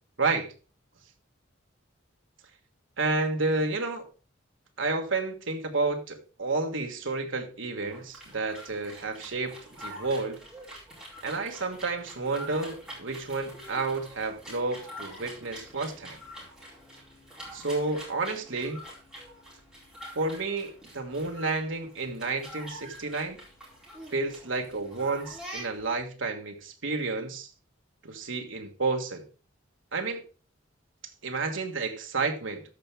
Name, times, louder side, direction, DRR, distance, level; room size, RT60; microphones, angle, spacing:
voice 1, 0.2-0.5 3.0-4.0 4.8-10.4 11.2-16.2 17.5-18.8 20.1-23.4 24.1-27.5 28.0-29.3 29.9-30.2 31.2-32.6, right 3 dB, 70° right, 1.5 m, -31 dB
sound 1, 7.8-26.0, equal, 5° right, 4.3 m, -46 dB
13.5 x 5.8 x 3.4 m
head